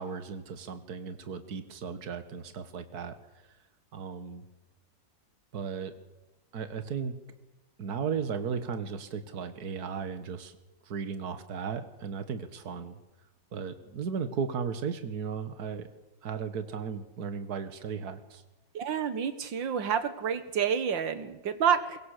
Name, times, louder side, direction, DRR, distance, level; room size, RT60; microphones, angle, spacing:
voice 1, 0.0-3.2 3.9-4.5 5.5-5.9 6.5-7.1 7.8-10.5 10.8-13.0 13.5-15.9 16.2-18.4, right 6 dB, 55° right, 10 dB, 2.1 m, -35 dB
voice 2, 18.7-22.0, right 7 dB, 85° right, 11 dB, 2.1 m, -29 dB
23.5 x 22.0 x 6.7 m, 1.0 s
omnidirectional pair, 2.0 m